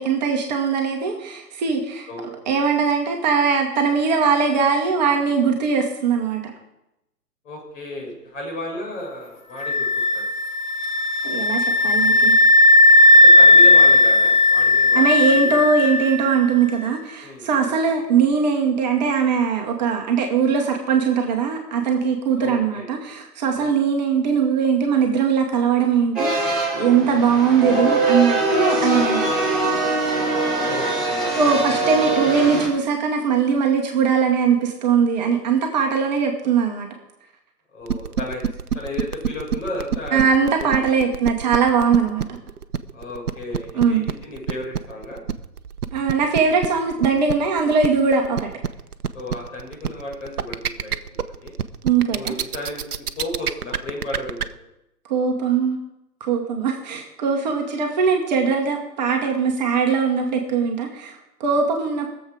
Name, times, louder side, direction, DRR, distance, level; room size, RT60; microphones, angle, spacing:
voice 1, 0.0-2.1 2.5-6.4 11.2-12.4 12.9-13.1 14.9-26.3 26.7-29.6 31.4-36.9 40.1-42.3 43.7-44.0 45.9-48.5 51.8-52.4 55.1-55.8 56.2-62.1, right 6 dB, 25° right, 2 dB, 1.2 m, -20 dB
voice 2, 2.1-2.6 7.4-9.9 10.1-10.2 13.1-15.6 17.2-17.8 22.3-22.9 23.5-23.8 27.3-27.5 30.6-32.1 37.7-38.4 38.7-40.2 40.6-40.7 41.0-41.1 42.9-45.2 49.1-51.5 52.1-52.8 53.2-54.5, left 1 dB, 50° left, -1 dB, 6.0 m, -34 dB
sound 1, 9.6-16.4, left 2 dB, 30° left, 0.9 m, -15 dB
sound 2, 26.2-32.7, right 2 dB, ahead, 3.7 m, -22 dB
sound 3, 37.9-54.4, right 8 dB, 65° right, 0.8 m, -26 dB
21.0 x 7.4 x 4.9 m, 0.91 s
figure-of-eight pair, 130°, 48 cm